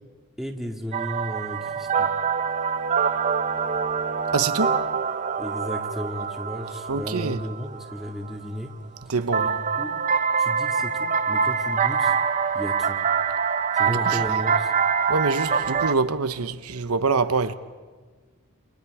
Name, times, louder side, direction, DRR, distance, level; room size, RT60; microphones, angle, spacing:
voice 1, 0.4-2.1 5.4-8.7 9.4-10.0 10.4-12.2 12.5-13.0 13.7-14.7, equal, ahead, 2.1 m, -34 dB
sound 1, 0.9-8.4 9.3-15.9, right 6 dB, 35° right, 0.6 m, -25 dB
Bowed string instrument, 1.3-5.2, left 3 dB, 70° left, 4.4 m, -44 dB
voice 2, 4.3-4.8 6.9-7.4 9.1-9.5 13.9-14.2 15.1-17.5, right 4 dB, 80° right, 1.0 m, -25 dB
29.0 x 28.0 x 4.9 m
head